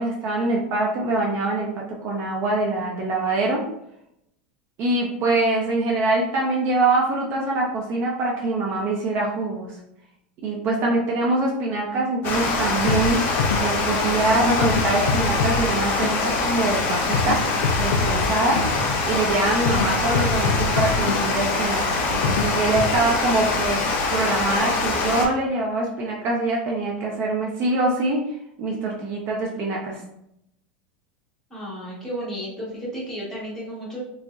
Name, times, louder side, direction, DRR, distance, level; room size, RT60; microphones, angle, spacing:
voice 1, 0.0-3.6 4.8-9.7 10.4-13.2 13.6-17.4 17.8-28.2 28.6-30.0, right 2 dB, 40° right, -1 dB, 0.5 m, -24 dB
Water, 12.2-25.3, left 3 dB, 40° left, 0.6 m, -24 dB
sound 1, 12.9-23.0, left 4 dB, 85° left, 0.3 m, -27 dB
voice 2, 31.5-34.0, equal, 10° left, -7 dB, 1.1 m, -33 dB
3.5 x 2.0 x 2.4 m, 0.79 s
supercardioid pair, 140°, 6 cm